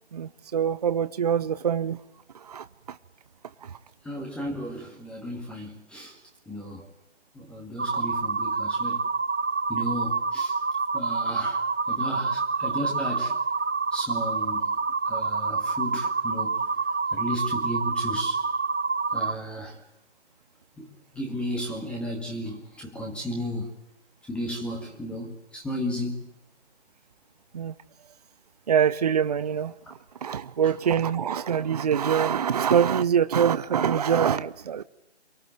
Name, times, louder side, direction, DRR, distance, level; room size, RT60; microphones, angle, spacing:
voice 1, 0.1-2.0 2.4-3.0 3.6-3.8 27.5-27.7 28.7-29.7 30.2-34.8, right 8 dB, 35° right, 0.9 m, -24 dB
voice 2, 4.0-6.2 6.5-6.8 7.3-9.0 9.7-10.6 10.9-11.6 11.9-13.4 13.9-14.7 15.1-16.7 17.1-18.4 19.1-19.8 20.8-23.7 24.3-26.3, equal, 5° left, 2.1 m, -34 dB
sound 1, 7.8-19.4, right 4 dB, 85° right, 1.3 m, -27 dB
27.0 x 24.0 x 7.9 m
figure-of-eight pair, 150°, 34 cm